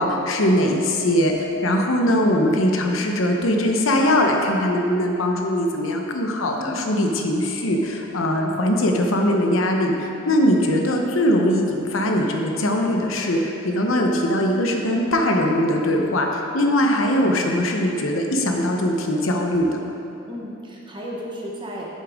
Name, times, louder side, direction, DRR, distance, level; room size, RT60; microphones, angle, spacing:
voice 1, 0.0-19.7, left 1 dB, 75° left, 2 dB, 0.8 m, -21 dB
voice 2, 6.6-6.9 16.8-17.2 20.3-22.0, equal, 25° right, -3 dB, 1.0 m, -34 dB
8.3 x 7.4 x 3.5 m, 2.9 s
head